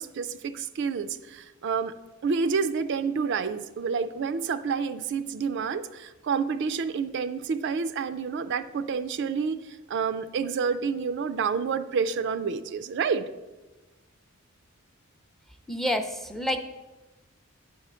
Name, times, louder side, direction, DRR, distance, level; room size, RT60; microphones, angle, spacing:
voice 1, 0.0-1.9 2.2-13.3, right 5 dB, 55° right, 11 dB, 0.4 m, -29 dB
voice 2, 15.7-16.6, equal, ahead, 6 dB, 0.5 m, -28 dB
9.3 x 4.2 x 6.2 m, 1.1 s
head